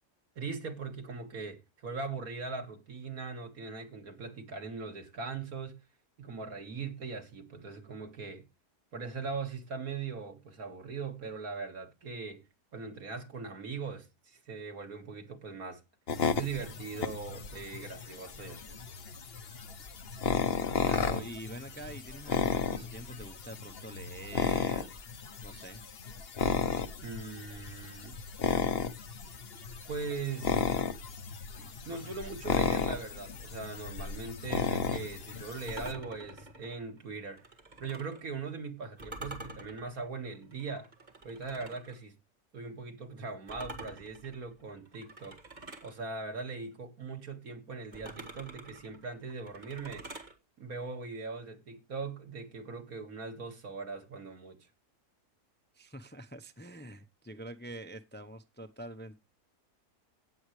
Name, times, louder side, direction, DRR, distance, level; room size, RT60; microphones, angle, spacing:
voice 1, 0.4-5.8 6.2-8.4 8.9-12.4 12.7-15.8 16.4-18.8 27.0-28.2 29.9-30.6 31.6-37.5 37.8-40.9 41.2-42.2 42.5-45.4 45.8-50.1 50.6-54.6, right 4 dB, 75° right, 2.5 m, -40 dB
sound 1, 16.1-35.9, left 6 dB, 45° left, 1.1 m, -34 dB
voice 2, 20.8-25.8 55.7-59.2, right 1 dB, 10° left, 0.6 m, -46 dB
sound 2, 35.6-38.2 39.0-42.0 43.5-45.9 47.9-50.3, right 1 dB, 30° right, 2.1 m, -47 dB
17.5 x 7.9 x 3.2 m
omnidirectional pair, 1.6 m